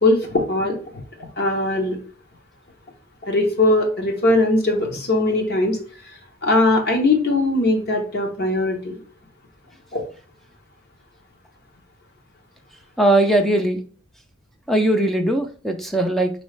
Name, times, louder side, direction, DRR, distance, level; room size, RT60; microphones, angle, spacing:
voice 1, 0.0-1.0 1.4-2.0 3.2-5.8 6.0-9.0 9.9-10.0, left 2 dB, 50° left, 2 dB, 0.9 m, -20 dB
voice 2, 13.0-13.8 14.7-16.3, right 1 dB, ahead, 5 dB, 0.4 m, -19 dB
4.7 x 3.1 x 3.2 m, 0.40 s
head